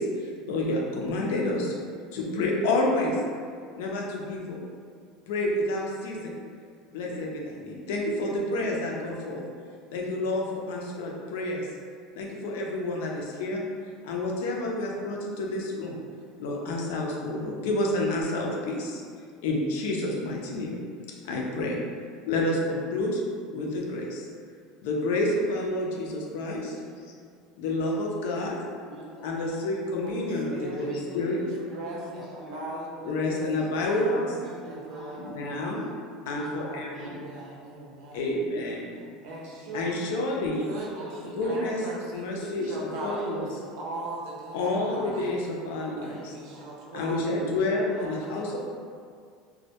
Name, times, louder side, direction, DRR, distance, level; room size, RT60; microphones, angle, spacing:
voice 1, 0.0-1.7 2.1-3.2 3.7-4.6 5.3-6.3 6.9-9.4 9.9-11.7 12.2-13.6 14.0-16.0 16.4-19.0 19.4-20.8 21.2-21.8 22.3-23.2 23.5-24.3 24.8-26.7 27.6-28.6 29.2-31.4 33.0-34.3 35.2-35.9 36.3-37.1 38.1-38.9 39.7-40.7 41.3-41.8 42.1-43.5 44.5-46.3 46.9-48.6, left 2 dB, 80° left, -1 dB, 0.4 m, -29 dB
voice 2, 28.9-29.7 30.6-32.7 34.4-35.7 36.3-36.7 36.9-38.1 38.9-39.8 40.7-41.5 42.4-42.7 43.1-43.9 44.6-45.1 45.7-46.9 47.8-48.6, equal, 5° right, -11 dB, 0.7 m, -45 dB
voice 3, 30.0-30.9 31.6-34.3 34.6-35.8 36.6-38.3 39.2-40.1 40.6-41.1 41.4-42.3 42.6-43.4 43.8-45.3 46.0-47.3 47.6-48.5, right 2 dB, 65° right, -4 dB, 0.5 m, -40 dB
2.1 x 2.1 x 2.7 m, 2.1 s
cardioid pair, 165°, 0 cm